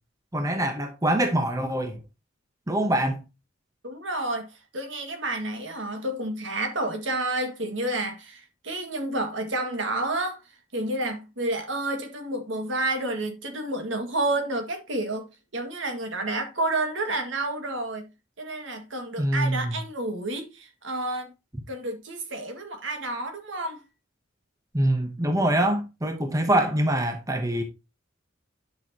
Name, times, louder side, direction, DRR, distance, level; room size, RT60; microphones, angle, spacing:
voice 1, 0.3-2.0 2.7-3.2 19.2-19.7 24.7-27.6, right 1 dB, 15° right, 0.9 m, -24 dB
voice 2, 3.8-15.3 15.5-18.1 18.4-21.3 21.7-23.8, right 2 dB, 65° right, 1.8 m, -30 dB
9.6 x 6.2 x 2.8 m
head